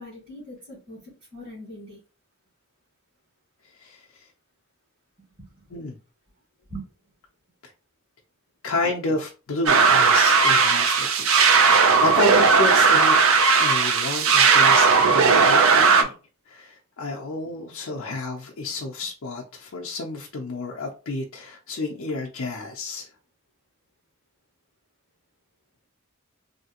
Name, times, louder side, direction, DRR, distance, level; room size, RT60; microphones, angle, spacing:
voice 1, 0.0-2.0 5.6-5.8 6.7-6.9, right 1 dB, 45° right, 1.9 m, -41 dB
voice 2, 8.6-13.2 13.6-16.1 16.5-23.1, left 2 dB, 65° left, 0.5 m, -30 dB
sound 1, 9.7-16.0, right 5 dB, 70° right, 0.5 m, -17 dB
3.2 x 2.7 x 2.9 m
head